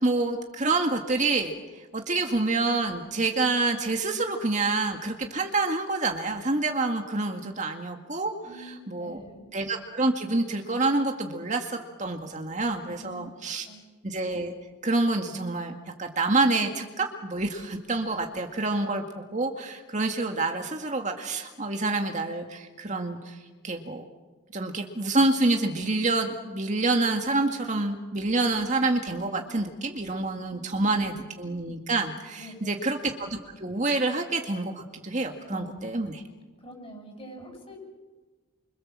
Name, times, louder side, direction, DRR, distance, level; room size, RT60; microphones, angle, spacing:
voice 1, 0.0-8.3 8.6-9.2 9.5-13.7 14.0-14.5 14.8-15.7 16.0-23.4 23.6-24.0 24.5-36.2, right 2 dB, 35° right, 3 dB, 2.0 m, -27 dB
voice 2, 8.4-9.5 12.8-13.3 13.7-13.8 30.5-31.1 32.4-32.8 35.5-36.2 36.6-37.8, equal, 30° left, 3 dB, 7.9 m, -45 dB
30.0 x 25.5 x 7.5 m, 1.3 s
head